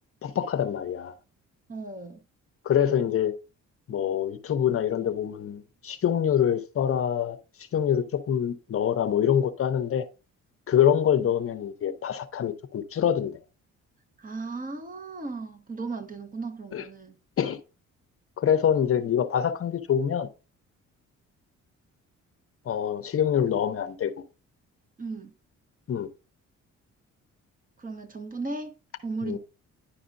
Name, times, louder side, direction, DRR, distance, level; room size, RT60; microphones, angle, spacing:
voice 1, 0.2-1.1 2.6-3.3 3.9-7.4 7.7-10.1 10.7-13.4 16.7-16.8 17.4-17.6 18.4-20.3 22.7-24.1 25.9-26.1 29.2-29.4, left 9 dB, 50° left, 0.7 m, -25 dB
voice 2, 1.7-2.2 14.2-17.1 25.0-25.3 27.8-28.7 29.0-29.4, right 3 dB, 30° right, 1.0 m, -36 dB
10.0 x 4.9 x 2.6 m
cardioid pair, 90°, 30 cm